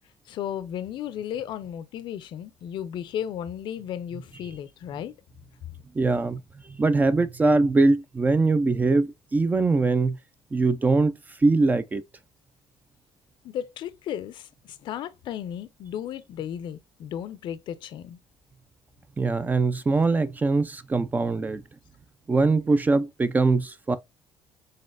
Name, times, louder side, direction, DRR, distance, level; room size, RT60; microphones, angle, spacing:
voice 1, 0.3-5.1 13.4-18.2, left 10 dB, 65° left, 0.5 m, -34 dB
voice 2, 5.9-6.4 6.7-10.2 10.5-12.0 19.2-21.6 22.3-24.0, right 3 dB, 20° right, 0.4 m, -22 dB
4.1 x 3.7 x 2.4 m
cardioid pair, 120°, 9 cm